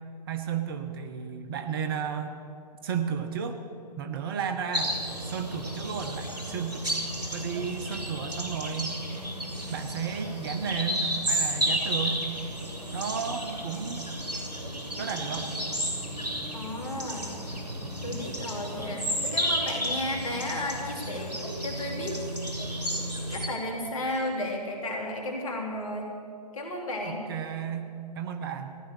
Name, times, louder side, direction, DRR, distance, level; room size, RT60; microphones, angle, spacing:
voice 1, 0.3-2.4 2.8-3.6 4.0-4.9 5.2-6.9 7.3-9.0 9.7-12.2 12.9-14.0 15.0-15.5 27.0-27.9 28.1-28.8, right 7 dB, 35° right, 7 dB, 0.9 m, -33 dB
sound 1, 4.7-23.5, equal, 80° right, 2.8 m, -32 dB
voice 2, 16.5-17.3 18.0-21.3 21.6-22.5 23.3-26.2 26.5-27.2, left 1 dB, 50° left, 1 dB, 2.9 m, -33 dB
15.0 x 11.0 x 6.5 m, 2.4 s
figure-of-eight pair, 125°, 21 cm